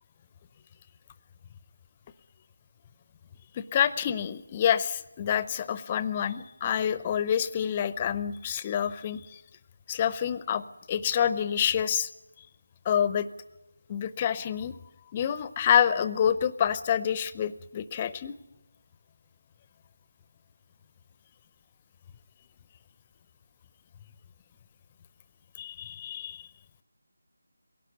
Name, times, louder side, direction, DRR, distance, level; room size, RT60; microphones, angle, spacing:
voice 1, 3.5-9.4 9.9-10.6 10.9-12.1 12.8-13.3 13.9-14.8 15.1-18.3 25.6-26.5, left 9 dB, 20° left, 15 dB, 0.7 m, -27 dB
21.5 x 17.5 x 9.3 m, 1.0 s
figure-of-eight pair, 165°, 0 cm